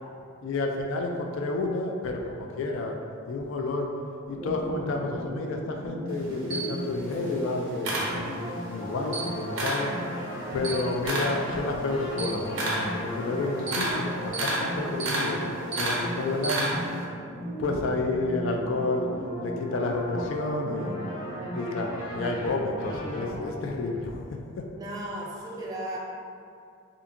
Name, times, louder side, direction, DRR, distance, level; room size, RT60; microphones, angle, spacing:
voice 1, 0.4-2.9 3.3-3.9 4.3-9.9 10.5-15.4 15.8-16.7 17.6-19.1 19.4-21.0 21.5-24.7, left 2 dB, 65° left, 2 dB, 0.3 m, -30 dB
sound 1, 4.3-23.4, equal, 25° left, 1.5 m, -36 dB
Camera, 6.1-8.7 9.0-9.9 10.3-17.0, right 2 dB, 75° right, 0.5 m, -31 dB
voice 2, 24.7-26.0, right 1 dB, 20° right, -5 dB, 0.4 m, -35 dB
2.7 x 2.4 x 2.5 m, 2.3 s
head